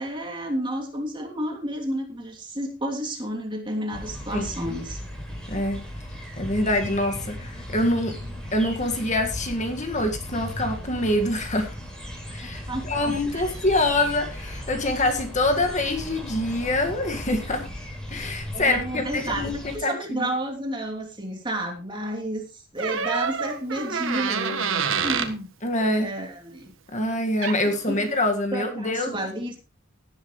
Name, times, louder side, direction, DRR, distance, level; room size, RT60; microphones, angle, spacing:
voice 1, 0.0-5.0 12.7-13.5 18.5-25.5 25.9-26.7 27.9-28.1 28.5-29.6, right 1 dB, 20° right, 1 dB, 3.1 m, -31 dB
sound 1, 3.9-19.8, equal, 5° left, 5.1 m, -36 dB
voice 2, 5.5-5.9 6.4-8.2 8.5-11.7 12.3-17.6 18.1-20.3 25.6-26.1 26.9-29.1, left 1 dB, 35° left, 5 dB, 1.9 m, -25 dB
Door, 22.8-25.4 27.1-27.2 27.4-27.8, right 6 dB, 65° right, 1.6 m, -27 dB
17.5 x 10.5 x 3.2 m, 0.29 s
head